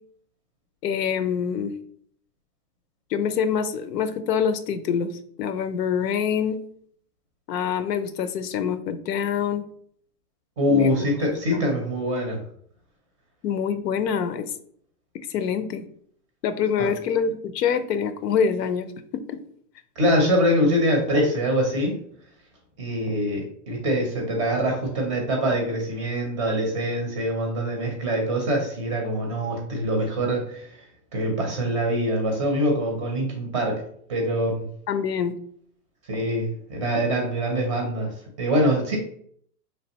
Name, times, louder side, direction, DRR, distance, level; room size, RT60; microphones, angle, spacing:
voice 1, 0.8-1.7 3.1-6.6 7.5-9.6 10.7-10.9 11.5-11.7 13.4-14.5 15.1-15.9 16.4-18.9 19.1-19.4 34.9-35.3, left 7 dB, 90° left, 10 dB, 0.7 m, -25 dB
voice 2, 10.6-12.4 16.8-16.9 20.0-21.9 22.8-30.7 31.1-33.8 34.1-34.7 36.1-38.1 38.4-39.0, equal, 20° right, 2 dB, 0.5 m, -24 dB
5.1 x 3.2 x 2.9 m, 0.64 s
supercardioid pair, 165°, 47 cm